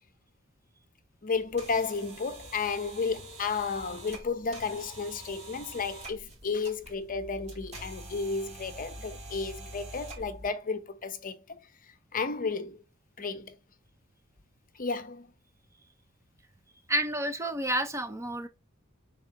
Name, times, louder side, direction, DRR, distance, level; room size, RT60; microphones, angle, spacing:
voice 1, 1.2-11.7 12.1-12.8 13.2-13.6 14.8-15.3, left 4 dB, 40° left, 0.7 m, -33 dB
sound 1, 1.3-10.5, right 1 dB, 30° right, 2.0 m, -46 dB
voice 2, 16.9-18.5, right 1 dB, 15° right, 0.5 m, -30 dB
5.2 x 3.6 x 5.6 m
head